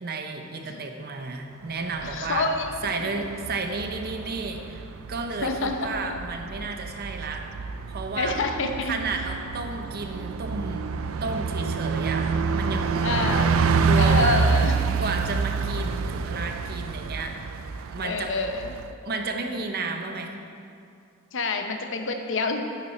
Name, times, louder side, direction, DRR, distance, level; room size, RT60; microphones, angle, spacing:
voice 1, 0.0-2.5 2.8-4.8 5.1-7.4 7.9-8.4 8.9-10.9 11.2-14.4 15.0-17.4 17.9-18.3 19.0-20.3, right 3 dB, 50° right, 4 dB, 0.8 m, -32 dB
Bus, 1.8-18.9, right 5 dB, 80° right, 0.4 m, -27 dB
voice 2, 2.0-3.1 5.4-5.9 8.2-8.9 13.0-13.5 13.9-14.7 18.0-18.7 21.3-22.6, left 3 dB, 65° left, 5 dB, 0.7 m, -27 dB
9.0 x 7.8 x 4.2 m, 2.4 s
head